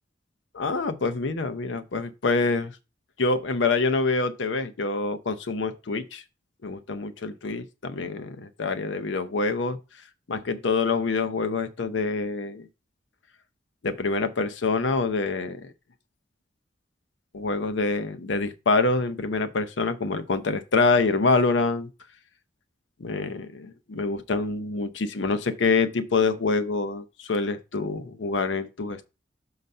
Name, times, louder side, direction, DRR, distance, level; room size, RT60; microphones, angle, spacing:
voice 1, 0.5-2.7 3.2-6.2 6.6-9.8 10.3-12.7 13.8-15.7 17.3-21.9 23.0-29.1, left 3 dB, 75° left, 0.7 m, -26 dB
6.6 x 4.0 x 5.4 m
head